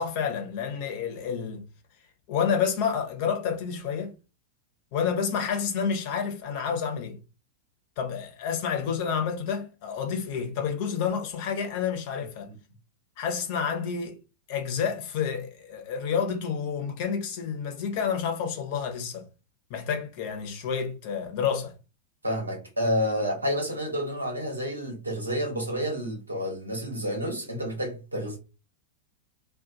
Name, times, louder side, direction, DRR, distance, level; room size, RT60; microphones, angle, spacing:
voice 1, 0.0-1.6 2.3-4.1 4.9-7.2 8.0-12.5 13.2-14.2 14.5-19.3 19.7-21.7, left 7 dB, 45° left, 0.9 m, -29 dB
voice 2, 22.2-28.4, equal, 80° right, 1.2 m, -29 dB
2.5 x 2.5 x 3.8 m
figure-of-eight pair, 90°, 0 cm